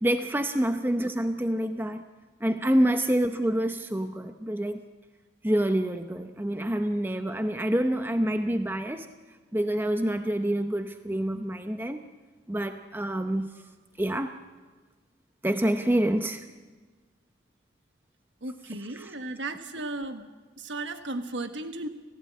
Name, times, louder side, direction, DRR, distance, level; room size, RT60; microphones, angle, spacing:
voice 1, 0.0-2.0 2.4-4.8 5.4-9.1 9.5-12.0 12.5-13.7 14.0-14.4 15.4-16.5 19.0-19.1, right 1 dB, 10° right, 7 dB, 0.7 m, -27 dB
voice 2, 18.4-20.3 20.6-21.9, right 2 dB, 75° right, 8 dB, 1.4 m, -35 dB
30.0 x 15.5 x 8.6 m, 1.3 s
head